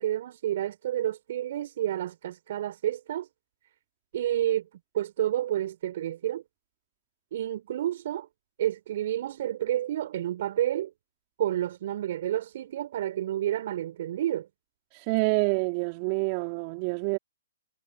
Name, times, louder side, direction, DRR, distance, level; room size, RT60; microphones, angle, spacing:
voice 1, 0.0-3.3 4.1-4.7 4.9-6.4 7.3-8.3 8.6-10.9 11.4-14.5, right 12 dB, 50° right, 6.0 m, -30 dB
voice 2, 14.9-17.2, right 32 dB, 35° right, 3.9 m, -27 dB
hypercardioid pair, 130°, 0 cm